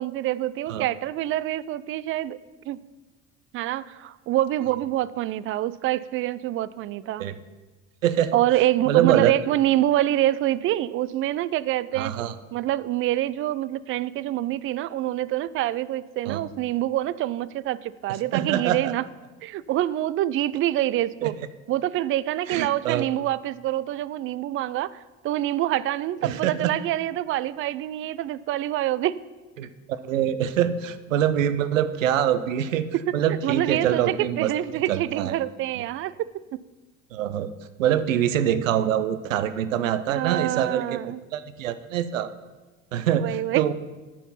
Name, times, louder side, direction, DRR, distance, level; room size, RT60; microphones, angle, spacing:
voice 1, 0.0-2.4 2.7-2.8 3.5-7.3 8.3-12.1 12.5-19.0 19.4-21.4 21.7-25.0 25.2-29.2 32.9-33.2 33.4-36.2 36.5-36.6 40.1-41.2 43.2-43.7, right 14 dB, 35° right, 18 dB, 0.4 m, -26 dB
voice 2, 8.0-8.4 8.9-9.3 12.0-12.3 16.3-16.4 18.3-18.9 21.2-21.3 22.5-23.1 26.2-26.7 29.6-29.7 30.0-32.9 33.1-34.5 34.9-35.4 37.1-37.5 37.8-41.0 41.3-42.3 42.9-43.7, right 10 dB, 75° right, 13 dB, 0.7 m, -24 dB
9.9 x 7.2 x 5.6 m, 1.2 s
figure-of-eight pair, 65°, 39 cm